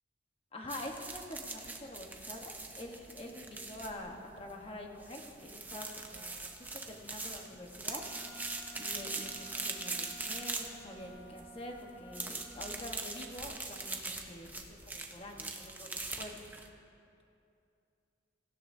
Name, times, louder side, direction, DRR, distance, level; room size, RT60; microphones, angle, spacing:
voice 1, 0.5-8.0 8.8-16.4, left 1 dB, 30° left, 2 dB, 1.1 m, -46 dB
sound 1, 0.7-16.7, right 3 dB, 10° right, 0.7 m, -42 dB
Wind instrument woodwind instrument, 7.9-12.9, right 1 dB, 85° left, 1.9 m, -53 dB
17.0 x 15.5 x 2.7 m, 2.6 s
head